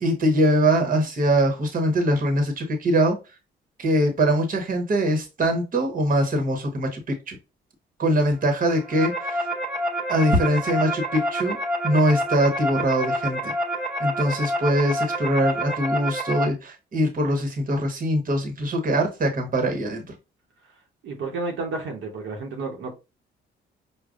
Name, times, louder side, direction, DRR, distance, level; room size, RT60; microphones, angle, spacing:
voice 1, 0.0-3.2 3.8-7.4 8.0-9.5 10.1-11.6 11.8-13.5 14.0-20.0, right 1 dB, 45° right, 1.1 m, -22 dB
sound 1, 8.7-16.5, equal, 5° right, 1.0 m, -28 dB
voice 2, 21.0-22.9, right 3 dB, 75° right, 1.0 m, -31 dB
5.0 x 2.3 x 2.5 m
cardioid pair, 90°, 20 cm